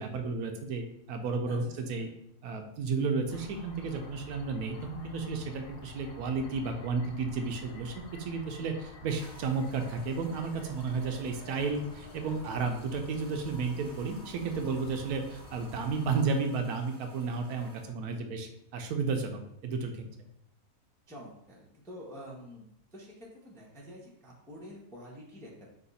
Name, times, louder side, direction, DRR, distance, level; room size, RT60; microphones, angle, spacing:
voice 1, 0.0-2.1 2.4-20.1, right 4 dB, 75° right, 4 dB, 1.1 m, -33 dB
sound 1, 3.3-16.2, left 3 dB, 85° left, 1.3 m, -50 dB
sound 2, 9.2-17.9, right 1 dB, 35° right, 0.9 m, -54 dB
voice 2, 21.1-22.7 22.9-25.7, equal, 5° left, -3 dB, 0.5 m, -47 dB
5.0 x 2.3 x 3.9 m, 0.78 s
omnidirectional pair, 1.7 m